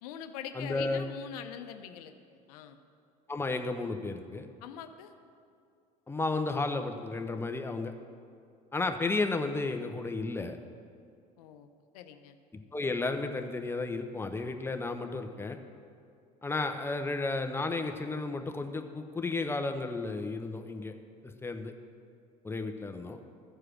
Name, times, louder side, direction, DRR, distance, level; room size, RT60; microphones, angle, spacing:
voice 1, 0.0-2.8 4.6-5.1 11.4-12.4, left 9 dB, 75° left, 8 dB, 0.8 m, -44 dB
voice 2, 0.5-1.1 3.3-4.5 6.1-7.9 8.7-10.6 12.7-15.6 16.4-20.9 21.2-21.7 22.4-23.2, left 3 dB, 10° left, 6 dB, 0.9 m, -33 dB
14.5 x 4.8 x 6.2 m, 2.4 s
hypercardioid pair, 80°, 20 cm